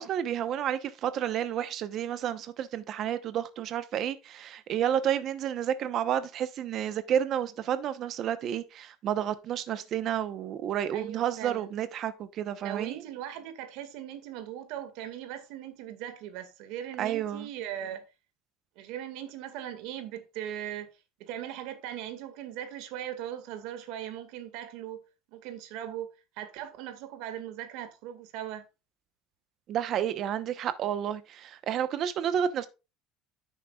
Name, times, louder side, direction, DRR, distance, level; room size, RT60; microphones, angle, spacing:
voice 1, 0.0-13.0 17.0-17.5 29.7-32.7, right 9 dB, 45° right, 0.9 m, -30 dB
voice 2, 10.9-11.7 12.6-18.1 18.8-20.9 21.2-25.0 25.3-28.7, right 11 dB, 70° right, 1.9 m, -39 dB
10.5 x 8.3 x 2.4 m
cardioid pair, 140°, 0 cm